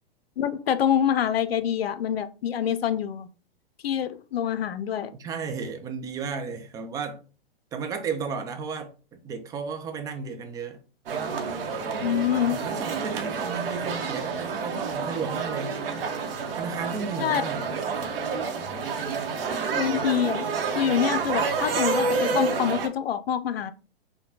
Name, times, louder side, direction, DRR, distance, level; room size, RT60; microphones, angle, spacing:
voice 1, 0.4-3.3 3.8-5.1 12.0-12.6 17.2-17.4 19.8-20.5 20.7-23.7, left 9 dB, 75° left, 0.6 m, -26 dB
voice 2, 5.2-7.2 7.7-10.8 12.5-15.8 16.5-17.6, right 5 dB, 10° right, 0.4 m, -33 dB
sound 1, 11.1-22.9, right 5 dB, 65° right, 0.9 m, -29 dB
5.7 x 2.2 x 2.7 m
hypercardioid pair, 115°, 30 cm